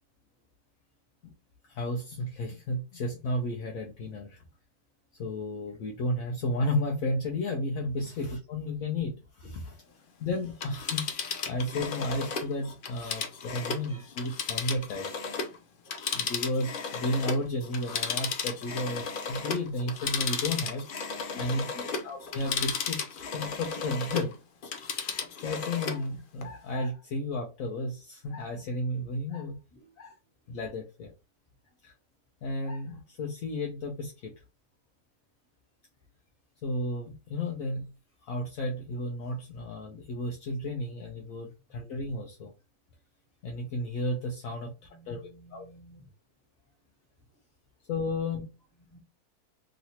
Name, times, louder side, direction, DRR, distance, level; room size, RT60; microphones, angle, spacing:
voice 1, 1.7-4.4 5.2-9.8 10.2-11.1 11.5-15.1 16.1-20.8 21.4-24.3 25.4-29.5 30.0-30.1 30.5-31.1 31.8-31.9 32.4-34.3 36.6-37.9 38.2-42.5 43.4-44.7 45.1-45.2 45.5-45.7 47.9-48.5, left 1 dB, 70° left, 1.0 m, -33 dB
Telephone, 10.5-15.6 15.9-24.3 24.6-26.0 26.4-26.5, left 5 dB, 90° left, 0.4 m, -34 dB
voice 2, 21.3-21.9 29.7-29.8 44.9-46.1 48.8-49.0, left 1 dB, 20° left, 1.7 m, -51 dB
3.2 x 2.9 x 2.8 m
omnidirectional pair, 1.7 m